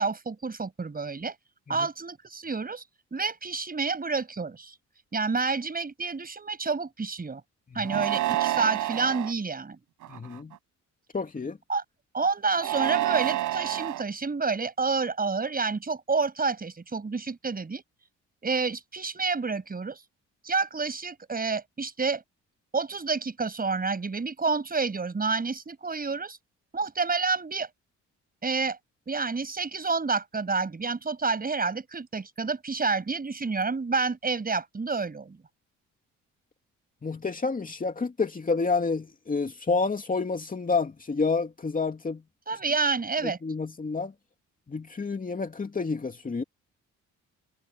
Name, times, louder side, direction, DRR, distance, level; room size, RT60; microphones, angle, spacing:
voice 1, 0.0-1.3 1.7-2.8 3.1-4.7 5.1-7.4 7.7-9.8 11.7-11.8 12.1-17.8 18.4-20.0 20.4-22.2 22.7-26.4 26.7-27.7 28.4-28.8 29.1-35.4 42.5-43.4, right 4 dB, 30° right, 6.7 m, -29 dB
sound 1, 7.8-9.3 10.0-10.5 12.5-14.0, right 14 dB, 85° right, 4.9 m, -28 dB
voice 2, 10.1-10.5 11.1-11.6 37.0-42.2 43.2-44.1 44.7-46.4, left 4 dB, 30° left, 2.6 m, -29 dB
cardioid pair, 90°, 30 cm